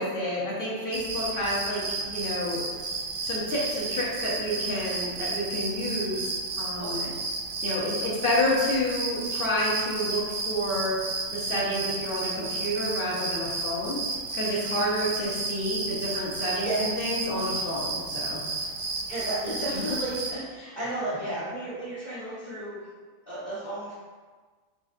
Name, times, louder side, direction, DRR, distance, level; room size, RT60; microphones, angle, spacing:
voice 1, 0.0-2.6 3.2-6.3 6.6-7.1 7.6-11.0 11.3-14.0 14.3-18.4 19.9-20.0, left 1 dB, 45° left, -6 dB, 1.1 m, -29 dB
sound 1, 0.9-20.3, right 3 dB, 65° right, 0.7 m, -32 dB
voice 2, 6.8-7.2 16.4-16.8 18.6-18.7 19.1-22.8 23.3-23.9, right 1 dB, 20° left, -15 dB, 1.1 m, -33 dB
4.0 x 3.8 x 2.5 m, 1.4 s
omnidirectional pair, 1.3 m